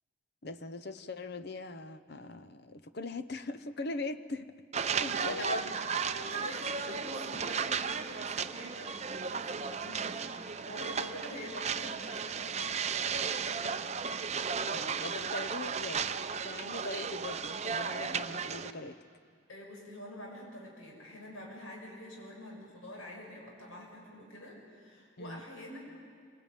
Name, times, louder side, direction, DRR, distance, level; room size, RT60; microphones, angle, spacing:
voice 1, 0.4-4.5 4.9-5.7 14.6-16.1 16.4-19.0 25.2-25.4, left 3 dB, 50° left, 12 dB, 0.9 m, -40 dB
sound 1, 4.7-18.7, right 6 dB, 30° right, 0.6 m, -35 dB
voice 2, 5.2-5.6 6.1-14.2 19.5-25.8, left 1 dB, 80° left, -1 dB, 6.5 m, -46 dB
26.5 x 19.5 x 9.2 m, 2.2 s
head